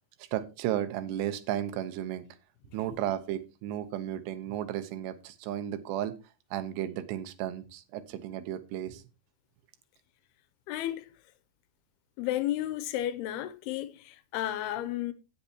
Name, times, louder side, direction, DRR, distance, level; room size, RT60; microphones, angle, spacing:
voice 1, 0.2-2.3 2.7-6.2 6.5-9.0, right 11 dB, 90° right, 3.1 m, -34 dB
voice 2, 10.7-11.1 12.2-15.1, left 13 dB, 80° left, 2.5 m, -32 dB
17.0 x 6.8 x 2.9 m
omnidirectional pair, 4.7 m